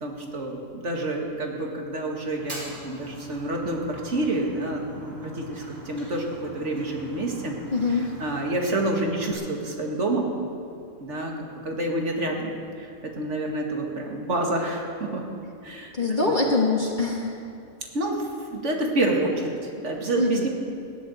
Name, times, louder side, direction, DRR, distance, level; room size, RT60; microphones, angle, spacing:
voice 1, 0.0-7.6 7.9-10.3 11.0-12.5 12.8-15.3 15.6-15.9 17.9-20.5, right 2 dB, 70° right, 0 dB, 2.5 m, -28 dB
Fire, 2.3-9.3, equal, 40° right, 4.7 m, -43 dB
voice 2, 7.7-8.1 15.9-17.3 20.2-20.5, left 3 dB, 40° left, -2 dB, 1.6 m, -24 dB
16.5 x 11.0 x 8.0 m, 2.4 s
omnidirectional pair, 1.3 m